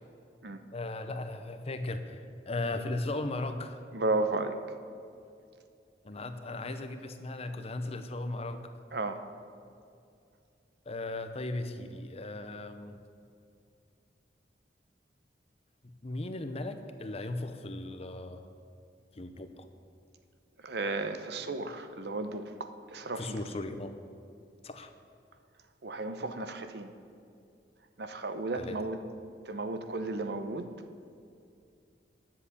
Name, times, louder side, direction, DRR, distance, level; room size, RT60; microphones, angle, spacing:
voice 1, 0.7-3.8 6.0-8.7 10.9-13.0 16.0-18.5 19.1-19.7 23.2-23.9 24.6-24.9 28.5-28.8, left 2 dB, 35° left, 8 dB, 0.8 m, -37 dB
voice 2, 3.9-4.6 8.9-9.2 20.6-23.4 25.8-26.9 28.0-29.0 29.5-30.7, right 3 dB, 65° right, 8 dB, 0.8 m, -34 dB
10.5 x 7.6 x 8.4 m, 2.4 s
head